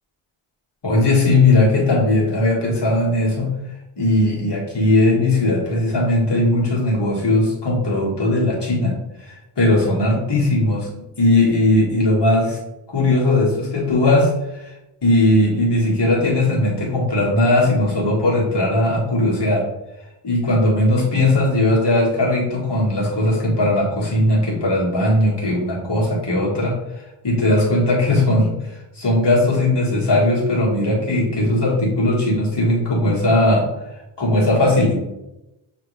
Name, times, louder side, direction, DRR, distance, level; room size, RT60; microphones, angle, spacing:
voice 1, 0.8-3.6 4.0-8.9 9.3-12.6 12.9-14.7 15.0-19.6 20.2-26.8 27.2-28.5 28.9-33.7 34.2-34.9, left 1 dB, 55° left, -4 dB, 1.6 m, -18 dB
6.0 x 2.6 x 3.1 m, 0.93 s
wide cardioid pair, 70°, 50 cm